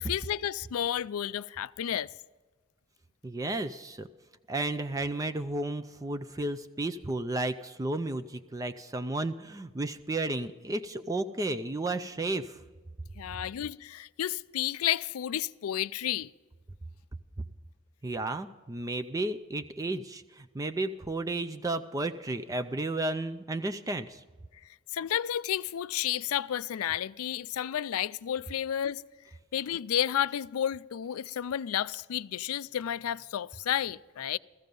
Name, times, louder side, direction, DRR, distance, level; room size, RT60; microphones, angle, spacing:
voice 1, 0.0-2.1 13.2-16.3 24.9-29.0 29.5-34.4, left 10 dB, 80° left, 0.4 m, -31 dB
voice 2, 3.2-4.1 4.5-12.6 18.0-24.2, right 2 dB, 15° right, 0.4 m, -33 dB
15.5 x 15.0 x 5.3 m
head